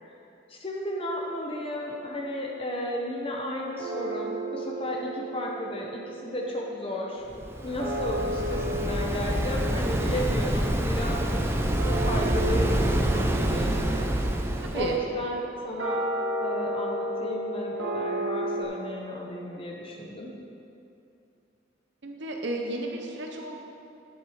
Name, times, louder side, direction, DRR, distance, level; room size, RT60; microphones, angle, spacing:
voice 1, 0.5-7.2 7.6-14.1 14.7-16.0 16.4-20.3, left 1 dB, 30° left, -1 dB, 0.8 m, -34 dB
sound 1, 1.7-3.0 3.8-18.6, right 1 dB, 75° right, 2.3 m, -34 dB
Waves surf, 7.3-15.0, right 1 dB, 10° right, 0.5 m, -27 dB
voice 2, 14.6-15.0 22.0-23.6, right 1 dB, 60° right, 1 dB, 0.8 m, -33 dB
11.0 x 7.2 x 4.9 m, 2.8 s
head